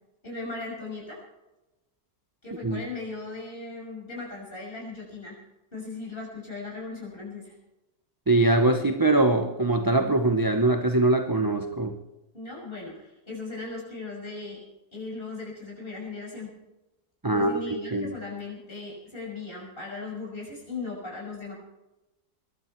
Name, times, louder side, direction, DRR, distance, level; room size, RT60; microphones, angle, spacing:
voice 1, 0.2-1.2 2.4-5.4 5.7-7.5 10.0-10.1 12.3-14.6 14.9-16.5 17.3-21.5, left 3 dB, 35° left, -3 dB, 6.7 m, -38 dB
voice 2, 8.3-11.9 17.2-18.1, right 2 dB, 15° right, 5 dB, 0.8 m, -23 dB
23.0 x 12.0 x 4.6 m, 0.99 s
omnidirectional pair, 1.6 m